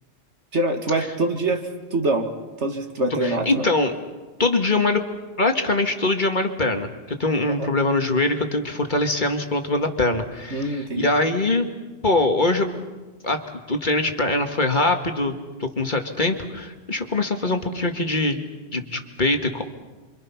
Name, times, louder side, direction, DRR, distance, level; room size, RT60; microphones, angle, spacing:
voice 1, 0.5-2.3 2.6-3.6 7.6-7.7 10.5-11.1, right 2 dB, 65° right, 4 dB, 2.4 m, -24 dB
voice 2, 3.2-3.9 4.4-5.0 5.4-6.9 7.2-11.7 12.0-12.8 13.2-13.4 13.7-18.4 18.7-19.6, left 2 dB, 40° left, 5 dB, 1.8 m, -23 dB
29.0 x 25.0 x 5.8 m, 1.3 s
omnidirectional pair, 1.3 m